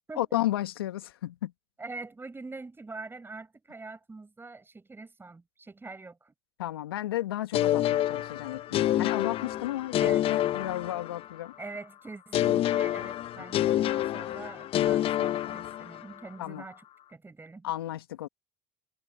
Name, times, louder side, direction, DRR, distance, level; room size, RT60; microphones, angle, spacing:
voice 1, 0.2-1.5 6.6-11.5 16.4-16.7 17.6-18.3, left 14 dB, 85° left, 2.1 m, -33 dB
voice 2, 1.8-6.3 10.0-10.2 11.6-16.8 17.1-17.7, right 3 dB, 20° right, 7.9 m, -44 dB
sound 1, 7.5-11.5 12.3-16.2, left 13 dB, 50° left, 1.1 m, -28 dB
hypercardioid pair, 75°, 12 cm